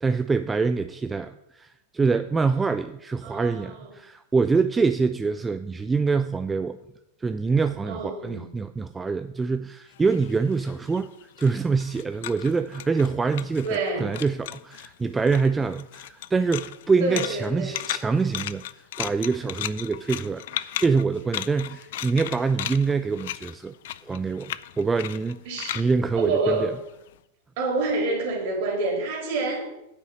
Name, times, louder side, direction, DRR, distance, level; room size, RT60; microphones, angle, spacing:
voice 1, 0.0-6.8 7.2-11.1 11.4-18.6 19.0-23.7 24.1-25.4 25.8-26.7, right 4 dB, 15° right, 10 dB, 0.4 m, -25 dB
voice 2, 3.2-3.9 7.9-8.5 13.6-14.1 17.0-17.8 25.5-25.9 26.1-26.7 27.6-29.7, right 3 dB, 50° right, 1 dB, 3.6 m, -27 dB
sound 1, 9.9-13.9 14.1-14.9 15.2-27.1, left 13 dB, 55° left, 0.4 m, -36 dB
9.8 x 5.5 x 7.7 m, 0.86 s
figure-of-eight pair, 90°, 0 cm